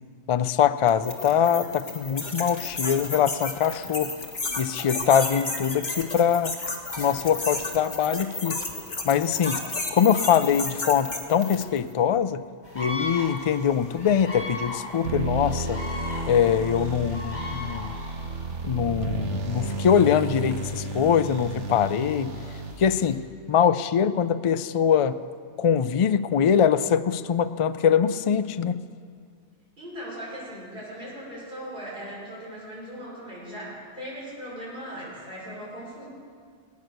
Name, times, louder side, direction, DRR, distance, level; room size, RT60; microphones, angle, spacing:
voice 1, 0.3-4.1 4.6-6.6 7.0-8.6 9.0-9.6 9.9-12.4 12.7-15.8 16.3-17.9 18.6-22.3 22.8-25.2 25.6-28.8, left 8 dB, 60° left, 12 dB, 0.3 m, -23 dB
sound 1, 0.9-11.8, left 2 dB, 40° left, 1.7 m, -33 dB
sound 2, 12.6-23.1, left 1 dB, 10° left, 3.4 m, -39 dB
sound 3, 15.0-23.0, right 2 dB, 85° right, 1.3 m, -32 dB
voice 2, 29.8-36.1, equal, 50° right, -6 dB, 5.8 m, -38 dB
20.0 x 9.6 x 6.6 m, 2.1 s
omnidirectional pair, 1.2 m